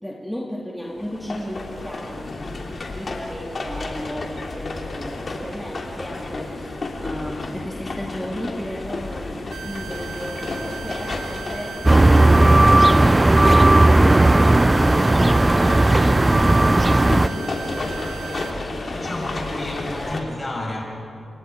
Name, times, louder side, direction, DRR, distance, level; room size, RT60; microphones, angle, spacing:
voice 1, 0.0-15.5 15.8-20.4, equal, 5° left, -2 dB, 2.6 m, -35 dB
sound 1, 1.0-20.2, left 2 dB, 55° left, 3.1 m, -31 dB
sound 2, 9.5-18.5, right 8 dB, 80° right, 0.7 m, -37 dB
sound 3, 11.9-17.3, right 2 dB, 25° right, 0.5 m, -14 dB
voice 2, 18.9-20.8, left 1 dB, 35° left, -1 dB, 7.3 m, -31 dB
29.0 x 24.0 x 4.7 m, 2.7 s
supercardioid pair, 40°, 0 cm